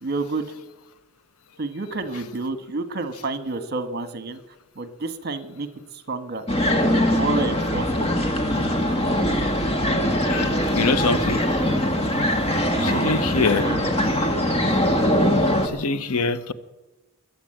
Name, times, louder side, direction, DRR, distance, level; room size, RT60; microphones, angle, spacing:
voice 1, 0.0-0.5 1.6-4.4 4.7-5.7 5.9-6.4 7.1-8.1 12.7-13.1 13.4-13.9, right 3 dB, 50° right, 10 dB, 1.4 m, -29 dB
sound 1, 6.5-15.7, left 1 dB, 30° left, 1.8 m, -22 dB
voice 2, 10.7-11.4 12.8-13.7 15.6-16.5, left 3 dB, 85° left, 13 dB, 1.0 m, -24 dB
21.5 x 8.3 x 7.9 m, 1.1 s
head